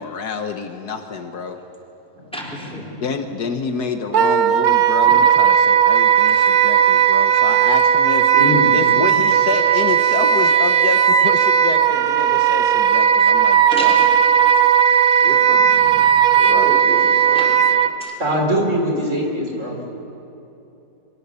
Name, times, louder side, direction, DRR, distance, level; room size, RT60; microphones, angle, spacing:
voice 1, 0.0-1.6 3.0-8.3 8.7-14.0 16.4-16.7, left 5 dB, 65° left, 6 dB, 1.6 m, -27 dB
voice 2, 2.3-2.8 13.7-14.1 15.2-15.8 16.4-17.6 18.0-18.1 18.6-18.7, equal, 5° left, -3 dB, 4.4 m, -31 dB
Wind instrument woodwind instrument, 4.1-17.9, right 8 dB, 65° right, 1.2 m, -15 dB
voice 3, 8.3-8.7 16.1-16.2 18.2-19.8, equal, 45° right, 0 dB, 4.2 m, -21 dB
24.5 x 23.0 x 6.9 m, 3.0 s
omnidirectional pair, 1.8 m